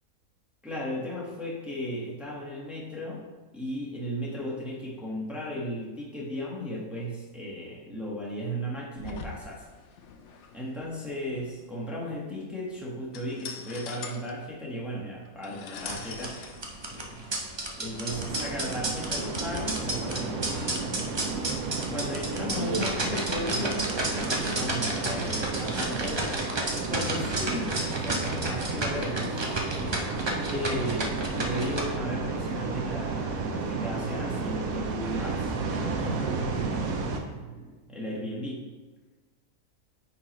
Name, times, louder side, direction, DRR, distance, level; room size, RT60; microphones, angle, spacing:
voice 1, 0.6-3.2 3.5-9.6 10.5-16.4 16.8-17.3 17.8-20.9 21.9-26.3 26.7-29.5 30.5-36.9 37.2-38.6, equal, ahead, -5 dB, 1.1 m, -35 dB
sound 1, 9.0-19.9, left 5 dB, 60° left, 0.8 m, -44 dB
sound 2, 15.8-31.8, right 2 dB, 40° right, 0.3 m, -32 dB
sound 3, 18.1-37.2, right 4 dB, 70° right, 1.1 m, -32 dB
9.4 x 4.1 x 3.1 m, 1.3 s
omnidirectional pair, 1.6 m